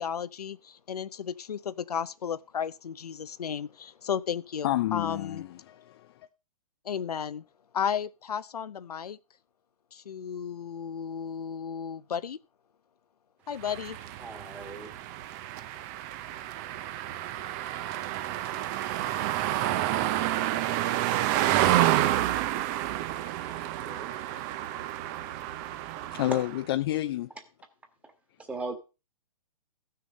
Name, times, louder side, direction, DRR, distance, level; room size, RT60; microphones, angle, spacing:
voice 1, 0.0-5.4 6.8-7.4 7.7-9.2 9.9-12.4 13.5-14.0, left 7 dB, 85° left, 0.7 m, -34 dB
voice 2, 4.6-6.3 22.8-23.0 23.3-24.4 26.1-27.3, left 14 dB, 40° left, 0.5 m, -31 dB
sound 1, 13.6-26.6, right 13 dB, 30° right, 0.6 m, -29 dB
voice 3, 14.2-14.9 23.4-23.6 23.8-24.1 28.0-28.1 28.5-28.7, right 3 dB, 5° right, 1.6 m, -40 dB
14.5 x 6.6 x 5.2 m
hypercardioid pair, 140°, 19 cm